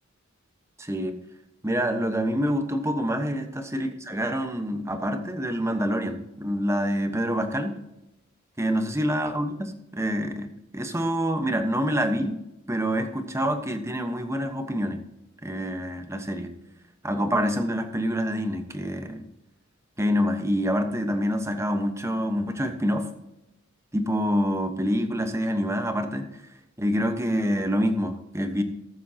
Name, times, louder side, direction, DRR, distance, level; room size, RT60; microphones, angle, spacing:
voice 1, 0.8-1.1 1.6-7.8 8.6-10.5 10.7-12.4 12.7-15.0 15.4-16.5 17.0-19.3 20.0-23.1 23.9-26.3 26.8-28.6, equal, 15° right, 6 dB, 1.2 m, -26 dB
20.0 x 7.3 x 2.9 m, 0.92 s
head